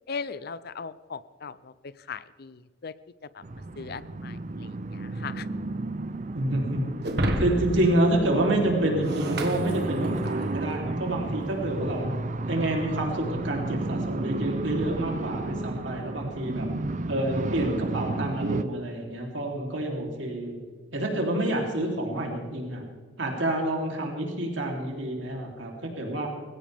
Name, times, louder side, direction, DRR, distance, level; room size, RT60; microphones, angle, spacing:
voice 1, 0.1-1.7 2.1-2.9 3.3-3.4 3.8-5.5, left 5 dB, 55° left, 16 dB, 0.6 m, -38 dB
sound 1, 3.4-18.6, right 2 dB, 40° right, 0.6 m, -32 dB
voice 2, 6.3-6.8 7.4-12.1 12.5-16.7 17.1-20.5 20.9-22.8 23.2-26.3, right 1 dB, 90° right, 0 dB, 3.3 m, -28 dB
Shatter, 7.0-10.5, right 1 dB, 60° right, 1.6 m, -31 dB
20.5 x 16.5 x 3.5 m, 1.5 s
head